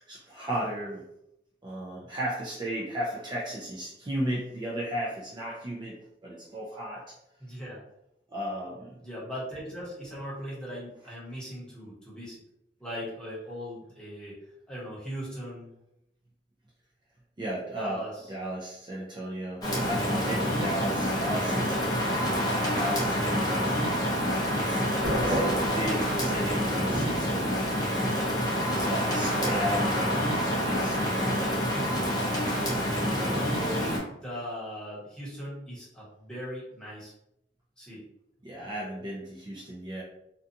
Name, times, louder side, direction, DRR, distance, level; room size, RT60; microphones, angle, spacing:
voice 1, 0.1-1.0 1.6-7.2 8.3-9.0 17.4-18.0 18.3-22.2 22.7-23.8 24.5-24.8 25.2-27.6 28.7-30.0 30.4-31.7 38.4-40.0, equal, 25° right, -5 dB, 0.4 m, -35 dB
voice 2, 7.4-7.8 9.0-12.4 12.8-14.4 14.7-15.7 17.7-18.3 31.7-32.0 33.1-37.1 37.8-38.1, equal, 5° left, -8 dB, 1.0 m, -39 dB
Rain, 19.6-34.0, equal, 20° left, 0.6 m, -27 dB
Thunder, 25.0-28.0, right 1 dB, 80° right, 1.0 m, -32 dB
2.5 x 2.3 x 2.7 m, 0.81 s
head